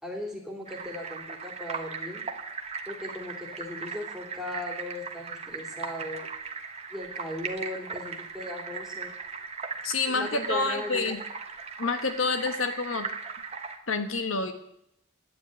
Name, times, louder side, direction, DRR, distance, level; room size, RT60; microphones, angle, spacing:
voice 1, 0.0-2.2 2.9-6.3 6.9-9.1 10.1-11.1, left 1 dB, ahead, -1 dB, 3.0 m, -37 dB
sound 1, 0.7-13.8, right 5 dB, 30° right, 1.3 m, -38 dB
voice 2, 9.8-11.2 11.8-13.1 13.9-14.5, left 4 dB, 75° left, 8 dB, 1.2 m, -28 dB
11.0 x 9.6 x 8.8 m, 0.78 s
head